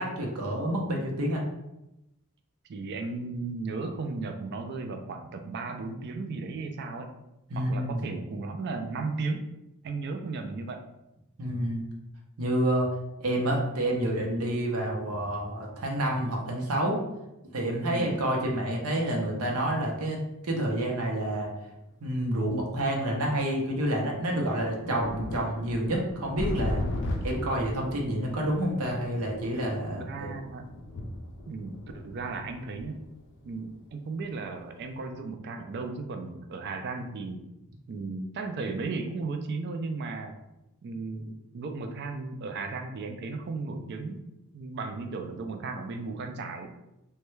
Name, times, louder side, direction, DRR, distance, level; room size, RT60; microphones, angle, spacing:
voice 1, 0.0-1.4 7.5-8.1 11.4-11.9 12.4-12.9 13.2-17.0 17.5-21.5 22.0-26.8 27.2-30.3, right 1 dB, 75° right, -1 dB, 0.7 m, -28 dB
voice 2, 2.7-7.2 7.5-9.4 9.8-10.8 17.9-18.1 29.7-30.8 31.5-33.0 33.4-37.4 37.9-40.4 40.8-44.2 44.5-46.7, right 3 dB, 50° right, 6 dB, 0.3 m, -35 dB
sound 1, 20.9-21.0 22.0-22.1 23.3-23.4 23.7-23.8 24.3-34.4 34.8-35.0, left 1 dB, 55° left, 0.4 m, -37 dB
3.2 x 2.2 x 3.1 m, 0.91 s
head